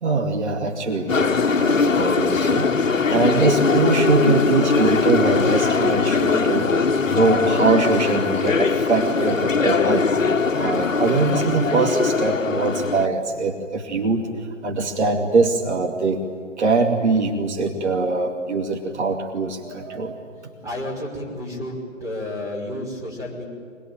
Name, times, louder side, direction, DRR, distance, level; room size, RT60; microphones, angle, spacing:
voice 1, 0.0-2.7 3.1-10.1 10.5-16.2 16.6-20.2, right 3 dB, 60° right, 3 dB, 2.6 m, -22 dB
sound 1, 1.1-13.1, left 4 dB, 80° left, 1.1 m, -21 dB
voice 2, 20.6-23.4, left 1 dB, 10° right, -1 dB, 5.7 m, -31 dB
24.5 x 22.0 x 8.9 m, 2.4 s
figure-of-eight pair, 120°, 38 cm